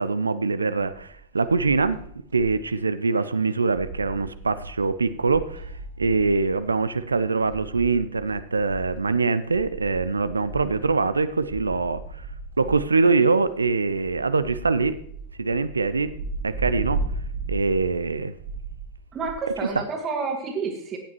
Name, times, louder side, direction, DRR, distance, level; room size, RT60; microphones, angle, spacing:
voice 1, 0.0-2.1 2.3-5.7 6.0-12.3 12.6-15.0 15.4-16.1 16.4-17.0 17.5-18.3, right 4 dB, 75° right, 14 dB, 0.4 m, -23 dB
sound 1, 0.8-2.7 3.1-3.2 3.5-19.7, right 3 dB, 60° right, 2.7 m, -37 dB
voice 2, 19.1-21.0, right 4 dB, 30° right, 3 dB, 1.8 m, -29 dB
15.0 x 9.4 x 3.1 m, 0.65 s
figure-of-eight pair, 90°, 0 cm